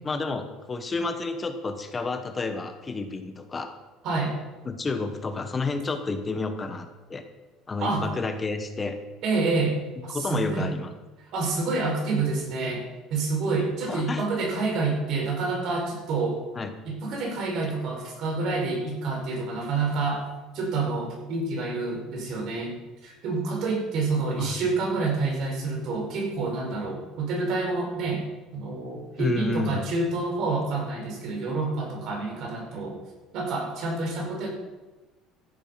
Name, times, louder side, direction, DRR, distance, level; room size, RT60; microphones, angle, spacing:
voice 1, 0.0-3.7 4.6-7.2 7.7-9.0 10.1-10.9 13.9-14.2 16.5-16.7 24.4-24.6 29.2-29.8, left 3 dB, 20° left, 7 dB, 1.2 m, -30 dB
voice 2, 4.0-4.3 7.8-8.1 9.2-9.8 10.0-10.7 11.3-16.4 16.9-20.3 20.5-22.8 23.0-28.2 28.5-33.0 33.3-34.5, right 3 dB, 55° right, 0 dB, 5.2 m, -28 dB
15.0 x 9.3 x 5.8 m, 1.1 s
cardioid pair, 145°, 0 cm